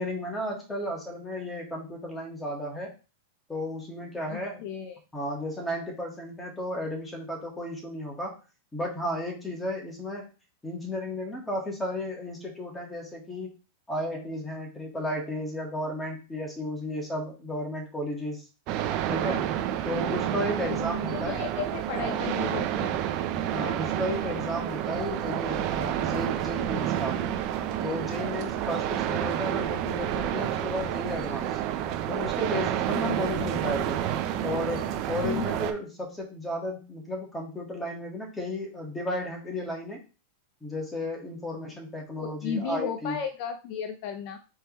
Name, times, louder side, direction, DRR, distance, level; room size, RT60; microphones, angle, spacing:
voice 1, 0.0-2.9 3.5-4.6 5.1-8.4 8.7-10.3 10.6-13.5 13.9-18.4 19.1-19.5 19.9-21.4 23.5-27.2 27.8-31.5 32.1-34.0 34.4-40.0 40.6-43.2, left 1 dB, 10° left, -1 dB, 1.8 m, -33 dB
voice 2, 4.3-5.0 19.9-20.1 20.7-20.8 21.1-23.0 32.9-33.4 35.2-35.4 42.2-44.4, left 7 dB, 55° left, 7 dB, 0.6 m, -34 dB
sound 1, 18.7-35.7, right 10 dB, 45° right, 0.7 m, -29 dB
4.4 x 3.5 x 3.1 m, 0.32 s
hypercardioid pair, 130°, 0 cm